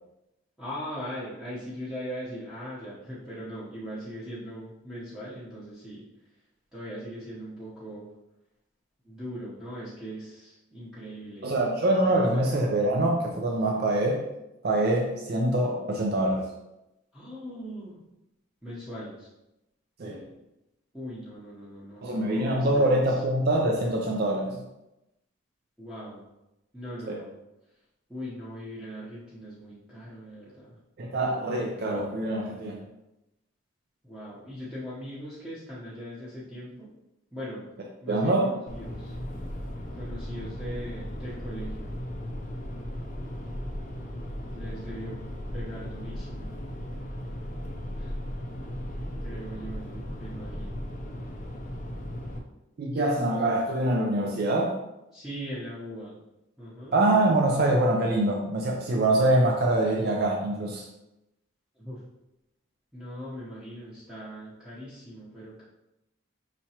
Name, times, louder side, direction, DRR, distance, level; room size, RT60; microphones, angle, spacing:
voice 1, 0.6-6.0 6.7-8.1 9.0-11.5 12.1-12.4 17.1-18.0 18.6-19.3 20.9-23.2 25.8-26.2 26.7-27.3 28.1-30.7 34.0-36.9 37.3-37.6 38.0-39.1 39.9-41.9 44.5-45.2 45.5-46.6 48.0-48.2 49.2-50.8 55.1-56.2 56.6-57.0 61.8-62.0 62.9-65.6, equal, 5° right, -10 dB, 0.8 m, -40 dB
voice 2, 11.4-14.3 14.6-16.5 20.0-20.3 22.0-24.6 27.1-27.2 31.0-32.8 38.1-38.6 52.8-54.8 56.9-60.9, right 1 dB, 50° right, 0 dB, 0.4 m, -24 dB
sound 1, 38.7-52.4, equal, 35° left, 0.5 m, -36 dB
5.5 x 2.9 x 2.8 m, 0.93 s
head